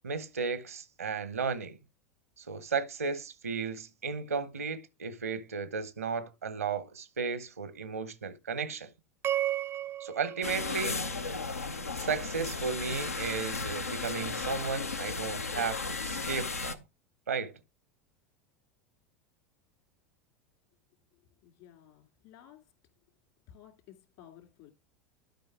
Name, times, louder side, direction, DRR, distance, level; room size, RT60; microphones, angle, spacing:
voice 1, 0.0-1.8 2.4-8.9 10.0-11.0 11.9-16.8 17.3-17.6, right 5 dB, 85° right, 0.9 m, -34 dB
sound 1, 9.2-11.6, right 12 dB, 30° right, 0.5 m, -34 dB
sound 2, 10.4-16.7, left 4 dB, 90° left, 0.7 m, -35 dB
voice 2, 21.1-22.7 23.5-24.7, left 10 dB, 55° left, 2.6 m, -55 dB
11.5 x 5.3 x 3.6 m
figure-of-eight pair, 85°, 8 cm